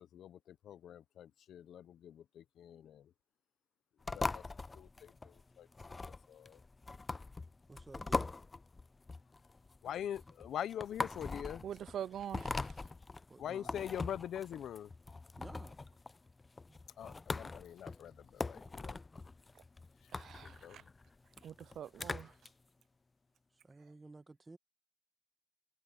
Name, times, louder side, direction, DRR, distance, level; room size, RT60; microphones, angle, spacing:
voice 1, 0.0-3.0 4.1-4.4 4.7-5.7 6.0-6.6 9.8-11.6 13.4-14.9 17.0-19.0 20.4-20.8, left 10 dB, 70° left, 0.9 m, -44 dB
sound 1, 4.0-22.5, left 3 dB, 25° left, 0.5 m, -42 dB
voice 2, 7.7-8.3 13.3-13.7 15.4-15.8 23.6-24.6, right 3 dB, 20° right, 1.4 m, -54 dB
voice 3, 11.6-12.7 20.1-20.8 21.4-22.3, right 9 dB, 65° right, 0.5 m, -44 dB
cardioid pair, 90°, 0 cm